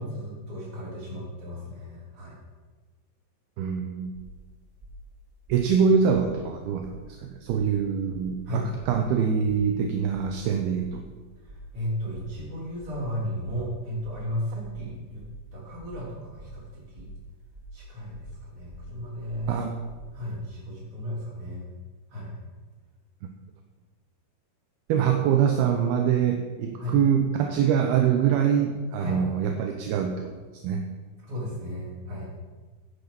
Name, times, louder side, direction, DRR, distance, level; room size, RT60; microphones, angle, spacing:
voice 1, 0.0-2.4 8.5-8.7 11.4-15.2 15.5-17.1 17.7-19.6 20.1-21.7 22.1-22.4 26.8-27.0 29.0-29.2 31.3-32.3, equal, 30° right, -5 dB, 4.0 m, -35 dB
voice 2, 3.6-4.1 5.5-11.0 19.5-19.7 24.9-30.8, right 7 dB, 75° right, 4 dB, 2.4 m, -24 dB
sound 1, 4.1-4.4 4.8-5.1 5.5-5.8 6.1-6.4 6.8-7.1 7.5-7.8 8.1-8.4 8.8-9.1 9.5-9.8 10.1-10.4 10.8-11.1 11.4-11.8 12.1-12.4 12.8-13.1 13.4-13.7 14.0-14.3 14.6-14.9 15.2-15.5 15.8-16.0 16.4-16.6 16.9-17.2 17.5-17.8 18.1-18.4 18.7-18.9 19.3-19.5 19.9-20.1, right 2 dB, 5° right, 2.0 m, -46 dB
10.0 x 9.6 x 5.9 m, 1.4 s
omnidirectional pair, 5.2 m